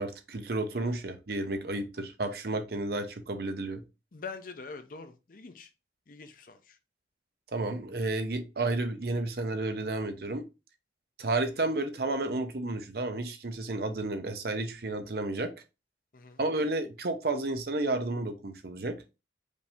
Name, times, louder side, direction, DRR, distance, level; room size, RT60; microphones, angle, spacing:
voice 1, 0.0-3.8 7.5-10.5 11.2-15.5 16.4-19.0, right 2 dB, 55° right, 0.7 m, -31 dB
voice 2, 4.1-5.7 6.1-6.8 16.1-16.4, left 4 dB, 45° left, 0.6 m, -44 dB
5.1 x 2.8 x 3.4 m
head